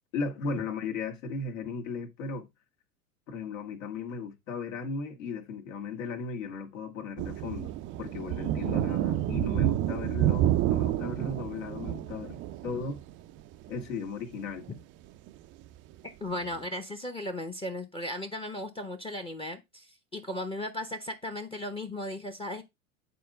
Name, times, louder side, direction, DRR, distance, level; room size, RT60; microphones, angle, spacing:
voice 1, 0.1-2.5 3.3-7.7 8.0-13.0 13.7-14.7, left 4 dB, 65° left, 1.8 m, -36 dB
sound 1, 7.2-13.4 13.7-13.8 14.4-14.8 15.3-15.4 16.5-16.6, right 13 dB, 30° right, 0.5 m, -29 dB
voice 2, 16.2-22.6, left 1 dB, 15° left, 0.9 m, -36 dB
9.4 x 4.3 x 3.6 m
hypercardioid pair, 90°, 42 cm